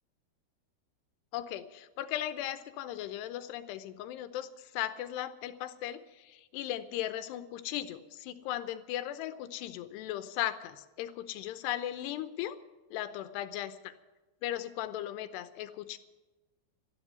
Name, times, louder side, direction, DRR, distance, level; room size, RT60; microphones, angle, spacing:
voice 1, 1.3-12.6 12.9-13.9 14.4-16.0, left 12 dB, 85° left, 11 dB, 2.9 m, -37 dB
13.0 x 11.0 x 9.5 m, 1.1 s
omnidirectional pair, 4.8 m